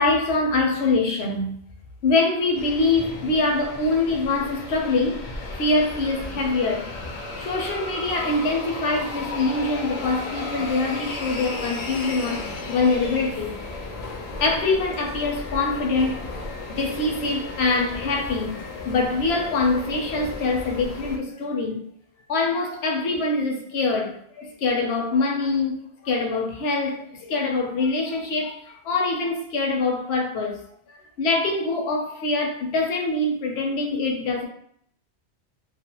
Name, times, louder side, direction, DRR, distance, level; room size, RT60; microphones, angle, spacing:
voice 1, 0.0-1.5 2.0-5.2 5.5-6.9 7.4-13.6 14.4-16.2 16.7-21.8 22.3-30.6 30.9-34.5, left 3 dB, 80° left, 0.9 m, -24 dB
sound 1, 2.6-21.2, left 3 dB, 55° left, 0.5 m, -34 dB
2.5 x 2.1 x 2.8 m
omnidirectional pair, 1.1 m